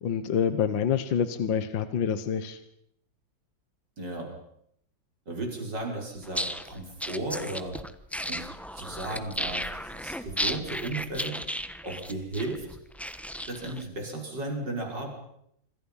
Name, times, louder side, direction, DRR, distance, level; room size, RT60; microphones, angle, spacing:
voice 1, 0.0-2.6, left 7 dB, 70° left, 11 dB, 2.0 m, -27 dB
voice 2, 4.0-4.3 5.3-7.8 8.3-11.4 11.8-12.7 13.4-15.1, right 2 dB, 60° right, 1 dB, 6.5 m, -35 dB
sound 1, 6.2-13.8, equal, ahead, 0.8 m, -34 dB
26.5 x 26.0 x 5.7 m, 0.74 s
omnidirectional pair, 2.1 m